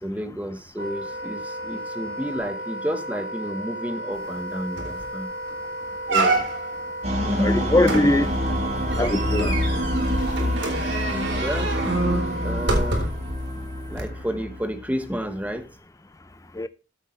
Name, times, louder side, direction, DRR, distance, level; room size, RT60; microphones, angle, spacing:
voice 1, 0.0-5.3 7.2-7.6 11.4-11.7 12.4-13.1 13.9-15.8, equal, 10° right, 1.2 m, -31 dB
Wind instrument woodwind instrument, 0.8-13.1, right 1 dB, 50° right, 3.8 m, -34 dB
sound 1, 4.3-4.4 4.8-5.1 5.5-5.6 6.1-6.8 7.8-13.3 13.9-14.0, right 2 dB, 70° right, 3.8 m, -27 dB
sound 2, 7.0-15.2, equal, 35° right, 2.6 m, -27 dB
voice 2, 7.4-8.3 9.0-9.6 16.6-16.7, left 1 dB, 15° left, 0.5 m, -22 dB
14.0 x 8.0 x 3.2 m
head